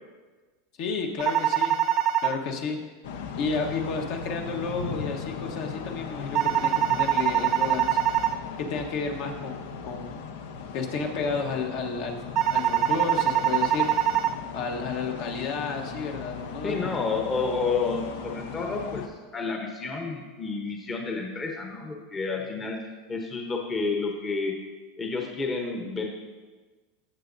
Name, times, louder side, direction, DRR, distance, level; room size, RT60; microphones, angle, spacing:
voice 1, 0.8-1.8 2.2-2.8 3.4-8.0 8.6-10.2 10.7-12.2 12.5-13.9 14.5-16.7, left 4 dB, 55° left, 2 dB, 1.2 m, -31 dB
sound 1, 1.2-2.3 6.3-8.3 12.4-14.3, right 11 dB, 40° right, 0.5 m, -23 dB
sound 2, 3.0-19.1, left 5 dB, 80° left, 0.8 m, -38 dB
voice 2, 16.6-22.8 23.1-24.5 25.0-26.1, left 4 dB, 20° left, 2 dB, 0.9 m, -30 dB
15.0 x 6.2 x 2.7 m, 1.3 s
supercardioid pair, 135°, 0 cm